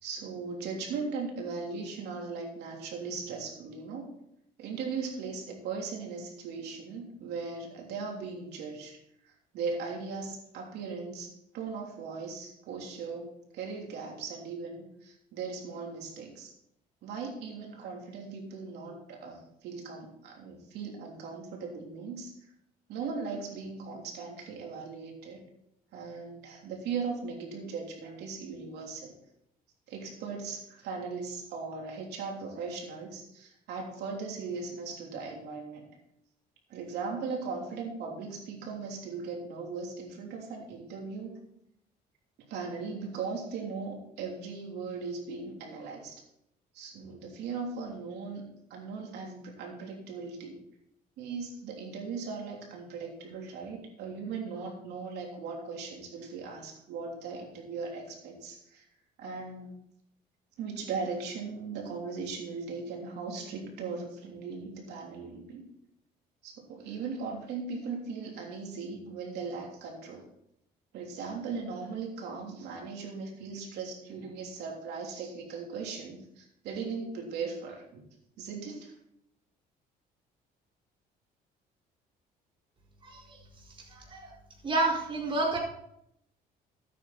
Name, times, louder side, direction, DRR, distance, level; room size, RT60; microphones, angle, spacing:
voice 1, 0.0-4.1 4.6-9.0 9.2-16.5 17.0-22.5 22.9-25.4 25.9-29.1 29.9-35.9 36.7-41.4 42.5-46.2 46.7-48.4 48.7-50.6 51.2-58.8 59.2-59.7 60.6-65.6 66.4-70.2 70.9-78.0 78.4-78.9, right 4 dB, 80° right, 0 dB, 3.4 m, -38 dB
voice 2, 83.0-83.4 83.9-84.3 84.6-85.6, right 2 dB, 30° right, -2 dB, 4.7 m, -29 dB
13.0 x 9.3 x 4.1 m, 0.75 s
cardioid pair, 110°, 17 cm